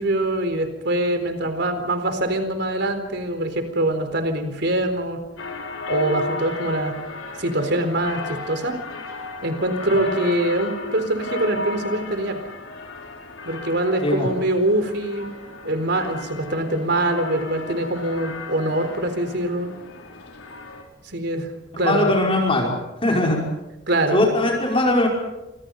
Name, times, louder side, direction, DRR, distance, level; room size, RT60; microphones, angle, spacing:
voice 1, 0.0-5.2 5.9-7.0 7.4-8.8 9.4-12.4 13.4-15.3 15.6-19.7 21.1-21.5 21.8-22.1 23.9-24.2, right 1 dB, 60° right, 7 dB, 4.2 m, -23 dB
sound 1, 5.4-20.8, left 3 dB, 85° left, 4.4 m, -34 dB
voice 2, 21.7-22.7 23.0-23.4 24.1-25.1, left 1 dB, 30° left, -1 dB, 5.3 m, -20 dB
27.5 x 26.5 x 5.5 m, 1.0 s
head